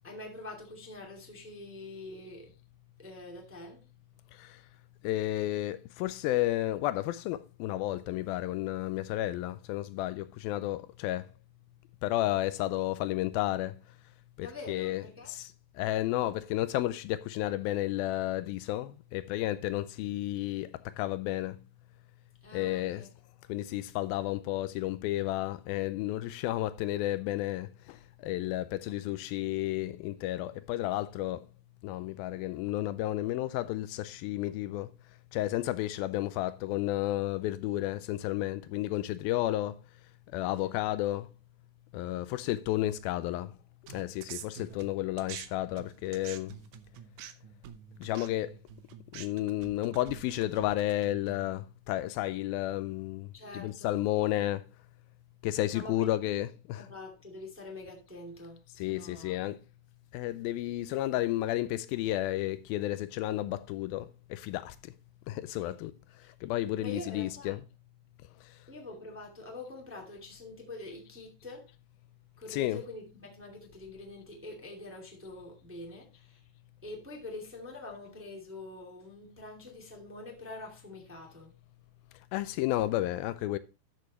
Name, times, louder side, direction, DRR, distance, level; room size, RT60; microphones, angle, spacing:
voice 1, 0.0-2.5 3.0-3.8 14.4-15.3 22.4-23.1 40.5-40.7 44.7-44.8 53.3-54.0 55.7-56.1 56.8-59.4 65.6-65.7 66.2-66.3 66.8-67.5 68.7-71.7 72.4-76.4 76.8-81.5, left 2 dB, 5° right, 1.2 m, -45 dB
voice 2, 5.0-11.3 12.0-13.8 14.4-15.5 15.8-21.6 22.5-23.1 23.5-28.0 28.2-31.5 31.8-34.9 35.3-39.8 40.3-41.3 41.9-43.5 43.9-46.6 48.0-48.5 49.1-53.3 53.5-54.6 55.4-56.9 58.8-59.6 60.1-64.9 65.3-65.9 66.4-67.6 72.5-72.8 82.3-83.6, left 15 dB, 80° left, 2.2 m, -32 dB
sound 1, 43.9-45.5 45.8-51.5, right 10 dB, 80° right, 1.7 m, -46 dB
12.5 x 6.7 x 3.0 m
omnidirectional pair, 4.6 m